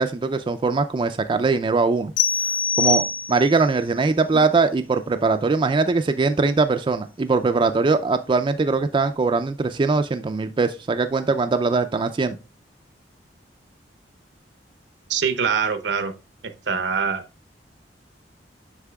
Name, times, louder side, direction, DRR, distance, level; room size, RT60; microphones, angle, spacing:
voice 1, 0.0-2.1 2.8-12.4, right 4 dB, 30° right, 0.3 m, -21 dB
sound 1, 2.2-3.7, left 5 dB, 75° left, 4.0 m, -23 dB
voice 2, 15.1-16.1 16.7-17.2, right 6 dB, 75° right, 0.8 m, -23 dB
8.2 x 5.7 x 2.3 m
head